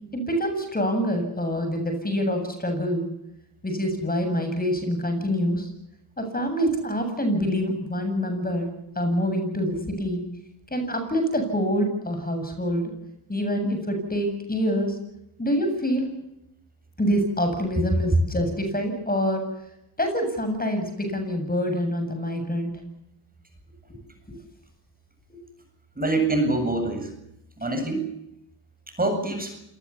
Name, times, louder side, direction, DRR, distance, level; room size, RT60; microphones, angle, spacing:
voice 1, 0.1-3.0 3.6-5.7 6.2-8.7 9.0-10.3 10.7-12.9 13.3-14.9 15.4-16.1 17.0-19.5 20.0-22.8 25.3-25.4, equal, 15° left, 6 dB, 7.7 m, -26 dB
voice 2, 26.0-27.1 27.6-28.1 29.0-29.5, right 2 dB, 15° right, 6 dB, 7.9 m, -25 dB
27.5 x 20.0 x 7.1 m, 0.85 s
cardioid pair, 75°, 50 cm